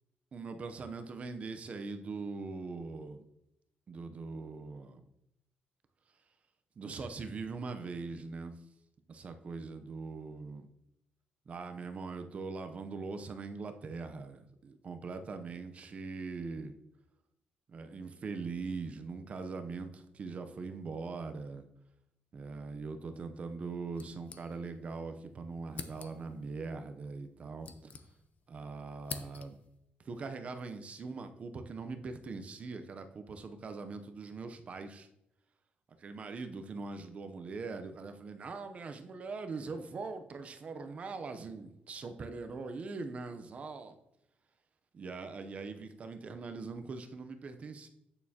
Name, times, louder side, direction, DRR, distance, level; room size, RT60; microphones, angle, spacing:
voice 1, 0.3-3.2 3.9-5.0 6.8-8.6 9.1-10.7 11.5-16.7 17.7-21.6 22.3-27.9 28.5-29.6 30.0-35.1 35.9-44.0 44.9-47.9, right 4 dB, 35° right, 8 dB, 0.6 m, -41 dB
sound 1, 23.9-24.9 25.2-25.3 25.7-26.4 27.2-28.5 28.8-29.8, left 5 dB, 40° left, 0.6 m, -47 dB
8.5 x 6.8 x 2.8 m, 0.83 s
cardioid pair, 155°, 4 cm